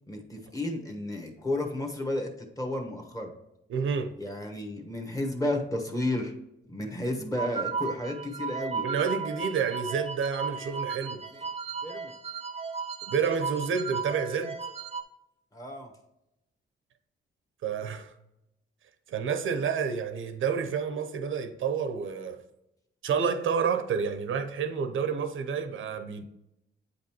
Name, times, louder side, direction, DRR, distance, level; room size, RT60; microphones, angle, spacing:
voice 1, 0.1-3.3 4.2-6.3 6.7-8.8 11.3-11.4 11.8-12.1 15.5-15.9, left 1 dB, 15° left, 1.1 m, -32 dB
voice 2, 3.7-4.1 8.8-11.2 13.1-14.6 17.6-18.1 19.1-22.4 23.0-26.3, right 6 dB, 75° right, 0.7 m, -29 dB
sound 1, 7.4-15.0, right 5 dB, 30° right, 0.6 m, -35 dB
8.4 x 5.3 x 2.9 m
cardioid pair, 130°, 21 cm